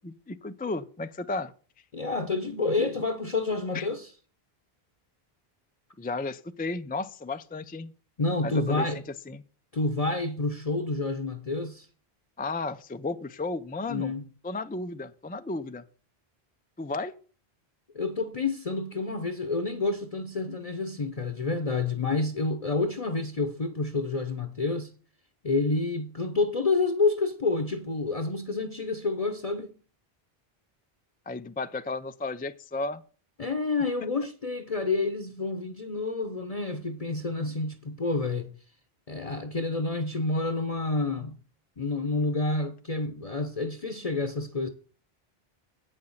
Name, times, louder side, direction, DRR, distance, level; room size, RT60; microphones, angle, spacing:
voice 1, 0.0-1.5 3.7-3.9 6.0-7.9 8.4-8.9 9.3-9.4 12.4-14.1 14.4-15.8 16.8-17.1 31.3-33.0, left 3 dB, 15° left, 0.4 m, -33 dB
voice 2, 1.9-4.1 8.2-9.0 9.7-11.9 13.9-14.3 17.9-24.9 25.4-29.7 33.4-38.5 39.1-41.4 41.8-44.7, left 3 dB, 40° left, 0.9 m, -29 dB
8.7 x 6.6 x 7.2 m
omnidirectional pair, 1.0 m